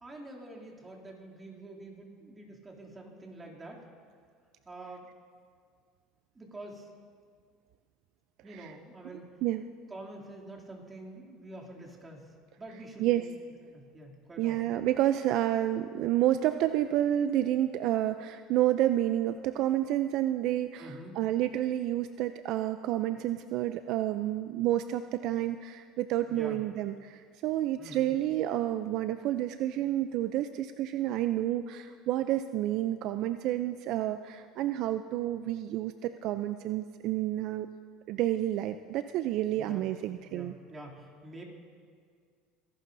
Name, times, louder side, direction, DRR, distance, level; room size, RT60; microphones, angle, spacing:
voice 1, 0.0-3.8 4.6-5.1 6.3-6.9 8.4-9.3 9.9-12.3 12.6-13.2 13.7-14.8 20.8-21.1 26.3-26.6 27.8-28.1 39.6-39.9 40.3-41.4, right 1 dB, 20° right, -2 dB, 2.7 m, -46 dB
voice 2, 14.4-37.7 38.1-40.5, right 13 dB, 60° right, 10 dB, 0.4 m, -29 dB
24.5 x 11.5 x 2.6 m, 2.1 s
supercardioid pair, 105°, 0 cm